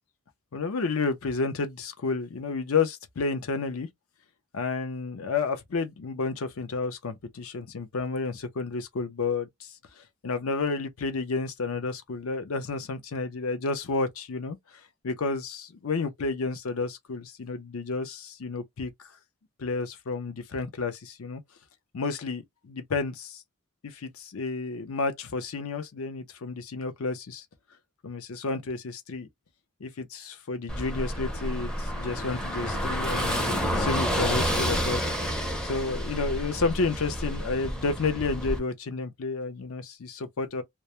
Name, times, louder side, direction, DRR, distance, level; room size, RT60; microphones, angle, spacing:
voice 1, 0.5-3.9 4.5-14.6 15.0-19.1 19.6-21.4 21.9-23.4 23.8-27.4 28.0-29.3 29.8-35.0 35.6-40.6, left 4 dB, 65° left, 0.6 m, -31 dB
Car passing by / Engine, 30.7-38.6, equal, 5° left, 0.5 m, -29 dB
2.2 x 2.0 x 2.8 m
head